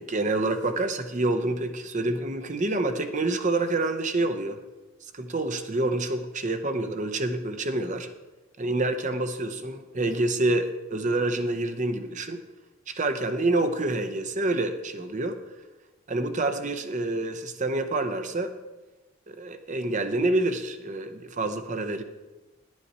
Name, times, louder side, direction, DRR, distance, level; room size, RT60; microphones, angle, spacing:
voice 1, 0.0-4.6 5.0-8.1 8.6-12.4 12.9-15.4 16.1-18.5 19.3-22.0, right 2 dB, 35° right, 8 dB, 0.7 m, -27 dB
11.0 x 9.6 x 4.2 m, 1.1 s
head